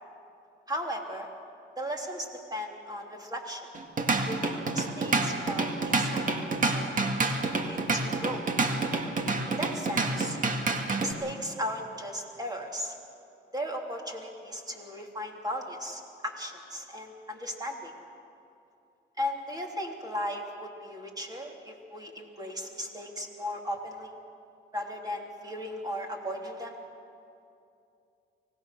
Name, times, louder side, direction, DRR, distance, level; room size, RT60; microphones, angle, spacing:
voice 1, 0.7-1.3 1.8-3.7 4.3-6.3 6.7-7.0 7.6-8.4 9.5-10.4 10.7-12.9 13.5-17.9 19.2-24.1 24.7-26.7, equal, 20° right, 1 dB, 3.3 m, -36 dB
Drum kit / Drum, 3.7-11.1, right 3 dB, 40° right, 2.0 m, -28 dB
24.5 x 18.0 x 6.7 m, 2.6 s
cardioid pair, 90°, 20 cm